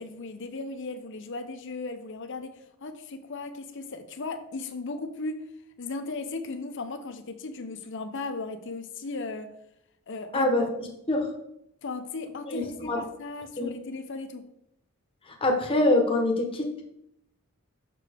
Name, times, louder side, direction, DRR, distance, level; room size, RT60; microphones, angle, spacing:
voice 1, 0.0-5.4 5.8-9.5 10.1-10.5 11.8-14.4, left 3 dB, 55° left, 8 dB, 0.7 m, -36 dB
voice 2, 10.3-10.6 11.1-11.3 12.5-13.0 13.6-13.7 15.3-16.8, left 1 dB, 25° left, 1 dB, 1.1 m, -24 dB
6.7 x 5.7 x 3.5 m, 0.79 s
head